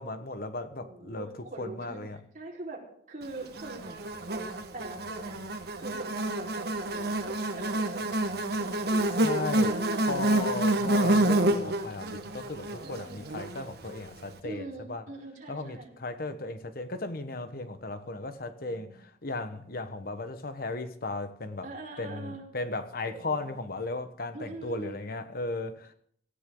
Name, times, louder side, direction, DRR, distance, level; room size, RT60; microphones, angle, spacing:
voice 1, 0.0-2.2 9.2-9.7 10.0-15.0 15.5-21.7 22.0-25.9, left 2 dB, 55° left, 1.3 m, -36 dB
voice 2, 0.7-2.0 2.3-5.4 5.8-8.1 8.6-10.4 12.8-13.4 14.4-15.9 18.6-18.9 21.6-22.4 23.0-23.6 24.3-25.0, right 2 dB, 50° right, 4.6 m, -43 dB
Buzz, 3.6-14.0, right 1 dB, 65° right, 1.5 m, -28 dB
18.0 x 15.0 x 3.9 m
head